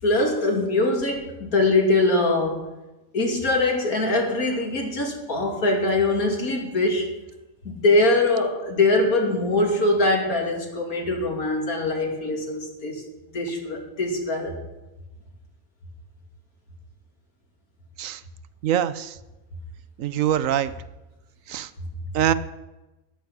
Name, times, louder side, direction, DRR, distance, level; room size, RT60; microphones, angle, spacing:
voice 1, 0.0-2.6 3.1-7.1 7.6-13.0 13.3-14.6, left 2 dB, 80° left, 1 dB, 3.1 m, -22 dB
voice 2, 18.6-19.2 20.0-20.7 21.5-21.7 22.1-22.3, right 11 dB, 70° right, 14 dB, 1.0 m, -23 dB
14.0 x 10.5 x 6.0 m, 1.0 s
omnidirectional pair, 1.5 m